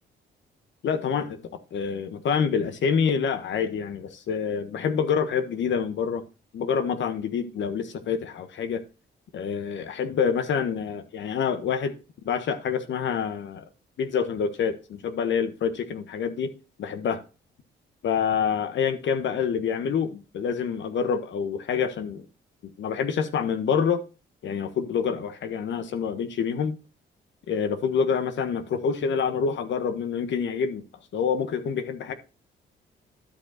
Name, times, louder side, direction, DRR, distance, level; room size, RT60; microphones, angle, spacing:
voice 1, 0.8-6.2 6.5-8.8 9.3-11.9 12.2-13.6 14.0-16.5 16.8-17.2 18.0-22.2 22.6-24.0 24.4-26.8 27.5-30.8 31.1-32.1, left 6 dB, 70° left, 1.5 m, -27 dB
11.5 x 5.3 x 4.2 m
cardioid pair, 90°, 20 cm